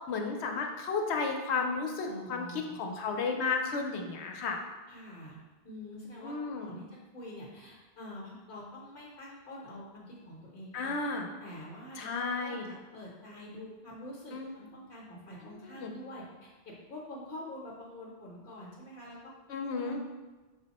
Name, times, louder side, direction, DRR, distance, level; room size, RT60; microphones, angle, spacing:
voice 1, 0.1-4.6 6.2-6.8 10.7-11.3 12.0-12.7 14.3-14.6 15.5-15.9 19.5-20.0, left 4 dB, 85° left, 3 dB, 0.9 m, -33 dB
voice 2, 2.1-3.0 4.9-5.4 5.6-11.0 11.4-19.3 19.7-19.9, left 1 dB, 60° left, -6 dB, 1.0 m, -46 dB
5.7 x 2.1 x 4.0 m, 1.2 s
omnidirectional pair, 1.1 m